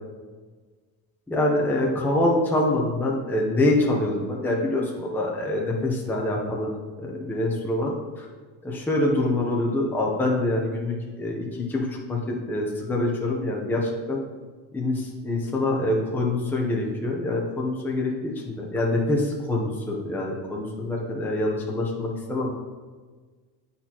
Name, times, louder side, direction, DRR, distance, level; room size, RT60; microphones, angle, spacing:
voice 1, 1.3-6.7 7.0-8.3 8.6-14.2 14.7-22.5, left 1 dB, 5° left, -2 dB, 0.7 m, -25 dB
9.6 x 4.2 x 2.9 m, 1.4 s
cardioid pair, 145°, 45 cm